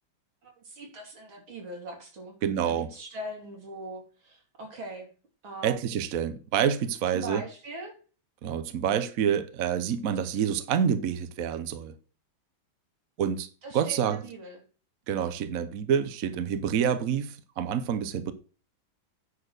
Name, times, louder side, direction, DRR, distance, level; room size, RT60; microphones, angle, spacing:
voice 1, 0.4-2.4 2.6-5.1 5.4-5.8 7.1-8.0 13.6-14.6, right 1 dB, 80° right, 3.7 m, -41 dB
voice 2, 2.4-2.9 5.6-7.4 8.4-11.9 13.2-13.5 13.7-14.2 15.1-18.3, right 8 dB, 55° right, 1.0 m, -27 dB
9.8 x 4.4 x 6.5 m
omnidirectional pair, 2.2 m